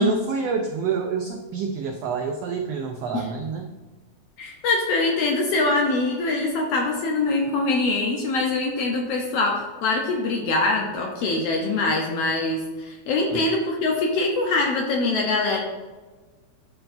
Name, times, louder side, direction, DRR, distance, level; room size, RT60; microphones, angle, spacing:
voice 1, 0.0-3.7 13.3-13.4, right 5 dB, 85° right, 4 dB, 1.4 m, -27 dB
voice 2, 4.4-15.6, left 3 dB, 75° left, 0 dB, 1.6 m, -23 dB
12.0 x 4.4 x 2.6 m, 1.3 s
omnidirectional pair, 3.5 m